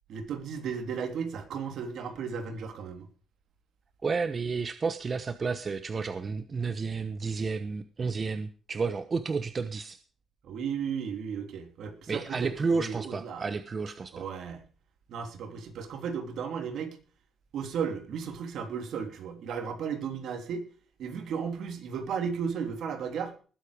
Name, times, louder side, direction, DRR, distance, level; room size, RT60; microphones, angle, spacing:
voice 1, 0.1-3.1 10.4-12.5 12.8-13.4 14.1-14.6 15.1-17.0 17.5-20.6 21.0-23.3, right 6 dB, 70° right, 6 dB, 3.3 m, -34 dB
voice 2, 4.0-10.0 12.1-14.3, right 4 dB, 35° right, 11 dB, 1.0 m, -31 dB
19.5 x 8.3 x 5.1 m, 0.39 s
cardioid pair, 90°, 0 cm